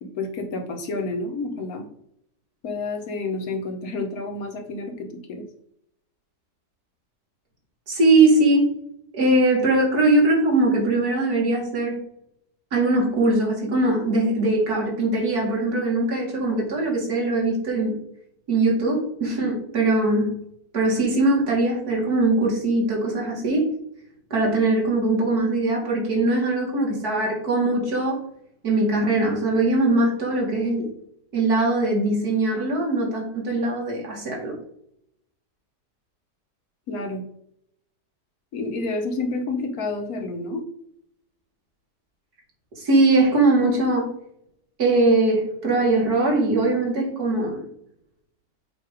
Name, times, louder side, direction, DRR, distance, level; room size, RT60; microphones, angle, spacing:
voice 1, 0.0-1.9 2.6-5.5 36.9-37.2 38.5-40.6, left 3 dB, 60° left, 4 dB, 1.4 m, -29 dB
voice 2, 7.9-8.7 9.1-12.0 12.7-18.0 18.5-20.4 20.7-23.7 24.3-28.2 28.6-30.9 31.3-34.5 42.8-44.1 44.8-47.6, right 2 dB, 65° right, -1 dB, 2.3 m, -21 dB
7.7 x 2.7 x 4.9 m, 0.72 s
omnidirectional pair, 1.8 m